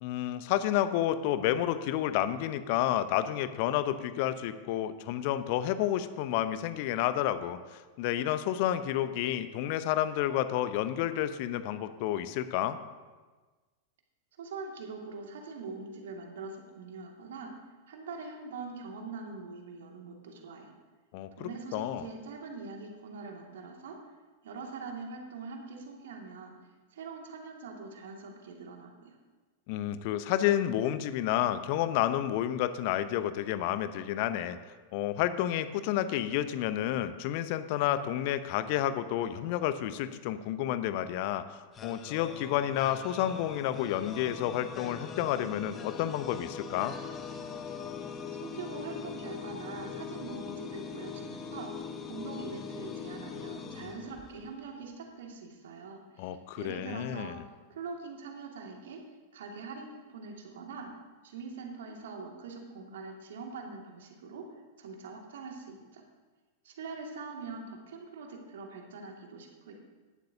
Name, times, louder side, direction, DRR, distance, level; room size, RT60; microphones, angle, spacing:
voice 1, 0.0-12.8 21.1-22.1 29.7-34.6 34.9-46.9 56.2-57.4, left 12 dB, 45° left, 13 dB, 0.7 m, -30 dB
voice 2, 14.4-17.5 17.9-20.7 21.3-24.1 24.4-26.5 26.9-29.2 48.3-57.4 57.7-59.0 59.3-60.9 61.2-64.5 64.8-66.0 66.6-69.7, right 4 dB, 60° right, 1 dB, 2.2 m, -43 dB
sound 1, 41.7-54.7, left 6 dB, 25° left, 1.2 m, -41 dB
16.5 x 11.5 x 2.8 m, 1.3 s
figure-of-eight pair, 90°, 0 cm